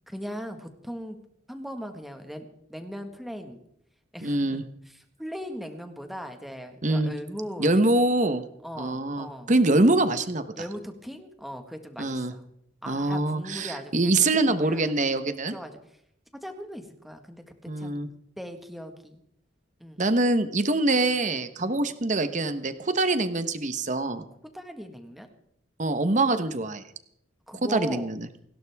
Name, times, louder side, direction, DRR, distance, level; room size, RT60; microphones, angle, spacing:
voice 1, 0.1-1.2 1.5-3.6 4.1-8.0 8.6-9.5 10.5-12.4 12.8-14.8 15.5-15.8 16.3-18.0 18.4-19.2 19.8-20.0 21.6-21.8 24.4-25.3 27.5-28.1, equal, ahead, 5 dB, 1.6 m, -39 dB
voice 2, 4.2-4.6 6.8-7.1 7.6-8.4 8.8-10.4 12.0-12.3 12.9-15.5 17.7-18.1 20.0-24.2 25.8-26.8 27.7-28.2, right 2 dB, 40° right, 10 dB, 1.1 m, -24 dB
29.0 x 11.5 x 3.6 m, 0.71 s
head